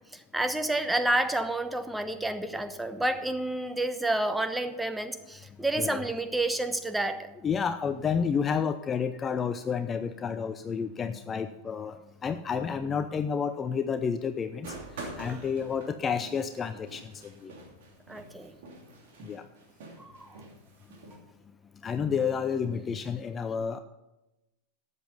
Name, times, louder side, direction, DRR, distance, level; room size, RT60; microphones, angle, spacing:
voice 1, 0.0-7.3 15.2-15.4 18.1-18.5 20.0-20.4 22.6-22.8, right 1 dB, 5° right, 10 dB, 0.9 m, -30 dB
voice 2, 5.8-6.1 7.4-12.0 12.2-14.7 15.0-17.5 19.3-19.4 21.8-23.8, left 6 dB, 20° left, 10 dB, 0.5 m, -30 dB
sound 1, 14.6-21.2, right 3 dB, 55° right, 2.8 m, -46 dB
13.0 x 8.1 x 5.5 m, 0.99 s
figure-of-eight pair, 90°, 0 cm